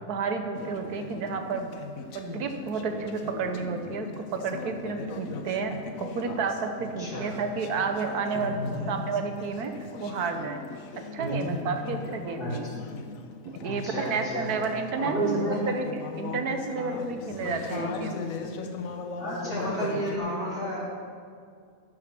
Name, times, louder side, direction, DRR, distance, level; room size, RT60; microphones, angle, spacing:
voice 1, 0.1-1.8 2.1-5.7 6.0-9.7 10.0-10.7 11.0-12.7 13.4-15.4 15.7-18.2, right 4 dB, 80° right, 6 dB, 1.4 m, -31 dB
Conversation / Chatter, 0.5-20.2, left 4 dB, 65° left, 1.1 m, -39 dB
voice 2, 8.3-8.8 11.2-11.5 12.4-12.5 13.6-14.5 15.0-15.6 19.2-20.8, right 1 dB, 45° left, -8 dB, 3.9 m, -31 dB
13.5 x 6.3 x 5.9 m, 2.2 s
omnidirectional pair, 1.6 m